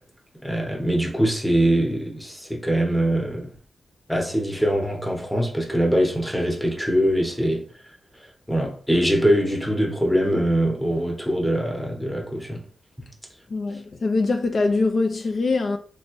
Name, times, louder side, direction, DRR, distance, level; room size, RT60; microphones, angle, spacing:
voice 1, 0.4-3.5 4.1-7.6 8.5-12.6, equal, 5° left, 0.9 m, -23 dB
voice 2, 13.5-15.8, left 3 dB, 55° left, 0.4 m, -23 dB
3.3 x 2.9 x 3.0 m
cardioid pair, 90°, 0 cm